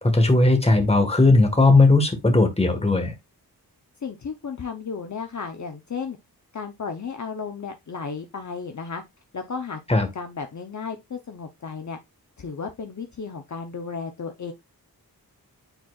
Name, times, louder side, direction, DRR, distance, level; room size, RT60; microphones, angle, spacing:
voice 1, 0.0-3.1 9.9-10.1, left 2 dB, 15° left, 1.6 m, -17 dB
voice 2, 4.0-6.2 6.5-9.0 9.3-9.8 10.1-12.0 12.4-14.5, left 5 dB, 50° left, 0.8 m, -34 dB
9.1 x 4.4 x 2.4 m
wide cardioid pair, 75°, 38 cm